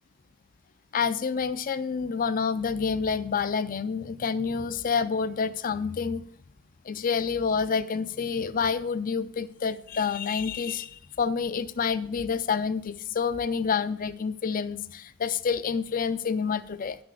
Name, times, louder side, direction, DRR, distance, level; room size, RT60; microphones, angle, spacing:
voice 1, 0.9-6.2 6.8-17.0, left 6 dB, 40° left, 13 dB, 0.4 m, -28 dB
10.5 x 6.0 x 4.8 m, 0.63 s
head